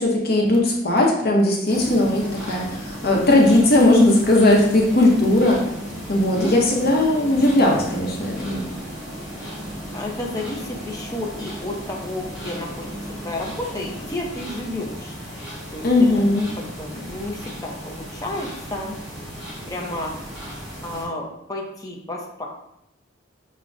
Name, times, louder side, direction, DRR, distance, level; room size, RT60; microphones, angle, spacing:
voice 1, 0.0-5.6 6.1-8.6 15.8-16.4, left 1 dB, 55° left, 0 dB, 0.7 m, -18 dB
sound 1, 1.7-21.1, equal, 5° right, 1.3 m, -35 dB
voice 2, 9.9-13.0 13.2-15.9 16.2-18.9 19.7-20.1 20.8-22.5, left 1 dB, 20° left, -1 dB, 0.6 m, -32 dB
6.0 x 2.1 x 2.5 m, 0.79 s
head